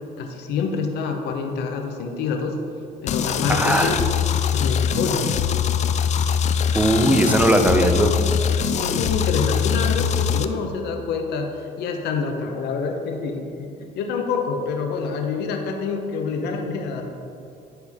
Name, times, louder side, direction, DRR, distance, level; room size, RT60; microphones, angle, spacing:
voice 1, 0.2-2.5 3.0-4.0 4.3-5.3 8.6-17.0, left 5 dB, 80° left, 3 dB, 0.9 m, -27 dB
sound 1, 3.1-10.5, left 7 dB, 45° left, 0.4 m, -22 dB
voice 2, 3.5-3.9 6.7-8.1, right 1 dB, 10° right, 5 dB, 0.6 m, -18 dB
9.8 x 4.5 x 3.6 m, 2.7 s
cardioid pair, 110°, 17 cm